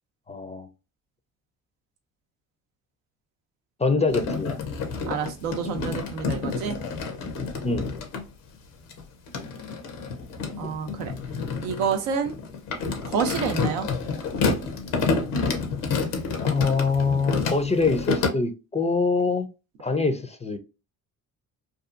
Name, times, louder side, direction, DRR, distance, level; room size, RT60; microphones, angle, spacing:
voice 1, 0.3-0.7 3.8-4.6 7.6-7.9 10.6-10.7 16.4-19.5 19.8-20.6, left 4 dB, 20° left, 0.4 m, -24 dB
sound 1, 4.1-8.2 8.9-18.3, left 4 dB, 90° left, 0.7 m, -29 dB
voice 2, 5.1-6.8 10.6-11.1 11.6-12.4 13.0-13.9, right 6 dB, 90° right, 0.6 m, -28 dB
2.6 x 2.4 x 2.4 m
hypercardioid pair, 55°, 40 cm